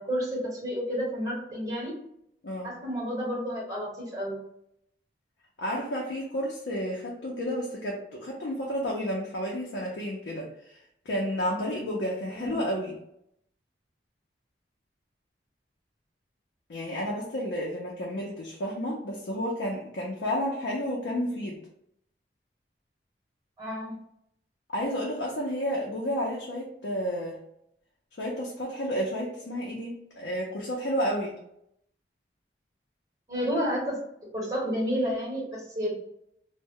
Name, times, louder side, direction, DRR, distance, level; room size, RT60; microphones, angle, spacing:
voice 1, 0.0-1.9 2.6-4.4 12.4-12.6 23.6-23.9 33.3-34.0 34.3-35.9, equal, 20° right, -5 dB, 1.1 m, -30 dB
voice 2, 2.4-2.8 5.6-10.8 11.1-13.0 16.7-21.6 24.7-27.4 28.2-31.4, equal, 80° left, -3 dB, 0.5 m, -31 dB
2.1 x 2.1 x 3.5 m, 0.76 s
head